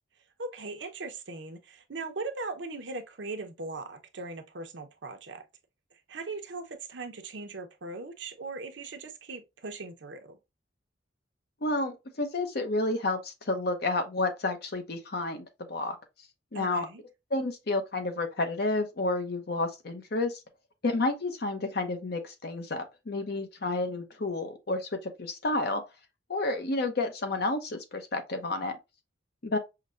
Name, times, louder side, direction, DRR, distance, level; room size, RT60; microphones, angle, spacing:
voice 1, 0.4-5.4 6.1-10.4 16.5-17.0, right 3 dB, 75° right, 0.8 m, -39 dB
voice 2, 11.6-16.0 16.5-16.9 17.3-20.4 20.8-25.8 26.3-28.8 29.4-29.6, left 2 dB, 55° left, 0.7 m, -30 dB
5.8 x 2.2 x 2.5 m
head